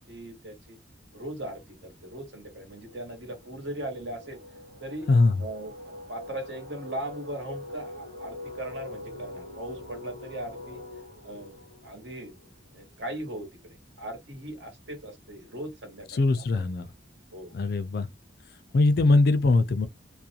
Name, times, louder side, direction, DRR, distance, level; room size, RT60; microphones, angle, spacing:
voice 1, 0.1-0.8 1.1-4.4 4.8-5.1 5.4-10.8 11.2-11.5 11.8-12.3 12.7-16.6 17.3-17.5, right 1 dB, 70° right, 1.2 m, -39 dB
sound 1, 0.9-1.2 1.5-13.1, left 2 dB, 90° right, 0.9 m, -44 dB
voice 2, 16.1-16.9 17.5-18.1 18.7-19.9, left 3 dB, 55° left, 0.4 m, -21 dB
2.4 x 2.1 x 2.7 m
head